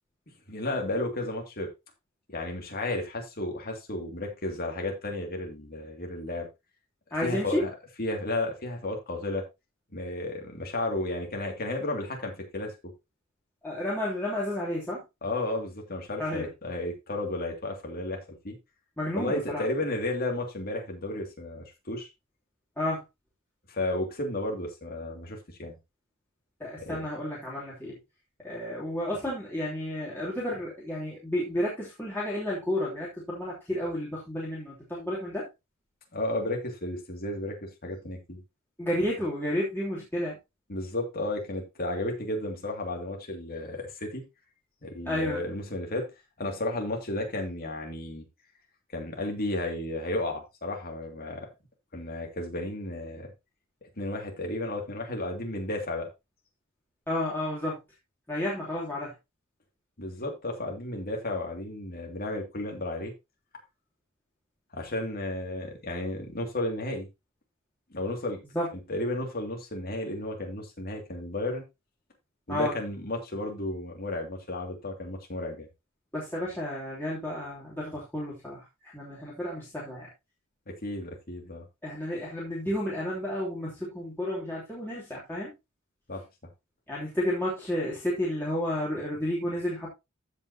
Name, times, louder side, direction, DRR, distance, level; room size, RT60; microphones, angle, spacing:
voice 1, 0.5-1.7 2.3-6.5 7.2-7.7 8.0-9.4 9.9-12.8 15.2-18.6 19.1-22.1 23.7-25.8 26.8-27.0 36.1-38.4 40.7-44.2 44.8-46.1 46.4-48.2 48.9-51.5 51.9-53.3 54.0-56.1 60.0-63.1 64.7-67.1 67.9-68.4 68.9-71.6 72.5-75.7 80.7-81.7 86.1-86.2, left 1 dB, 45° left, 2.4 m, -33 dB
voice 2, 7.1-7.6 13.6-15.0 16.2-16.5 19.0-19.6 22.8-23.0 26.6-27.9 28.4-35.5 38.8-40.4 45.0-45.5 57.1-57.8 58.3-59.1 68.5-68.7 72.5-72.7 76.1-80.1 81.8-85.5 86.9-89.9, left 1 dB, 10° left, 3.0 m, -31 dB
15.0 x 5.4 x 2.8 m
head